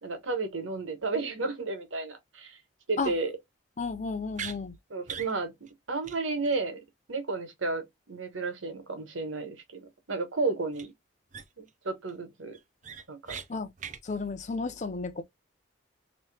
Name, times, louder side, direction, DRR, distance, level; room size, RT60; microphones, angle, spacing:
voice 1, 0.0-2.6 2.9-3.3 4.9-5.5 5.9-6.8 7.1-10.9 11.6-12.6 13.1-13.4, right 3 dB, 80° right, 1.3 m, -32 dB
voice 2, 3.8-4.8 13.5-13.7 14.0-15.2, left 4 dB, 35° left, 0.5 m, -33 dB
sound 1, 4.3-4.6 5.1-5.3 5.7-5.8 6.0-6.2 6.4-6.6 10.7-10.8 11.3-11.7 12.1-12.2 12.5-13.5 13.8-14.0, right 7 dB, 40° right, 0.5 m, -40 dB
3.0 x 3.0 x 3.3 m
head